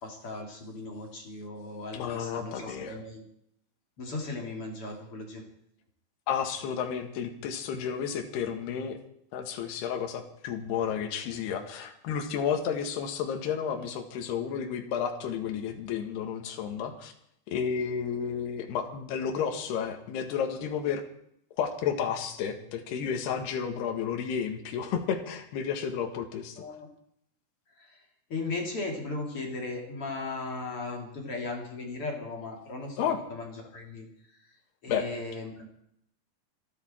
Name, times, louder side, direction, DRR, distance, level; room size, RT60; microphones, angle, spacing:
voice 1, 0.0-3.2 4.0-5.4 26.6-26.9 27.8-28.0 28.3-33.0 33.3-34.1 34.8-35.7, left 3 dB, 35° left, 1 dB, 3.3 m, -37 dB
voice 2, 1.9-3.0 6.3-9.0 9.3-17.1 17.5-21.0 21.6-26.6 33.0-33.2 34.9-35.1, left 7 dB, 70° left, 5 dB, 3.7 m, -32 dB
26.5 x 11.0 x 4.5 m, 0.71 s
omnidirectional pair, 5.0 m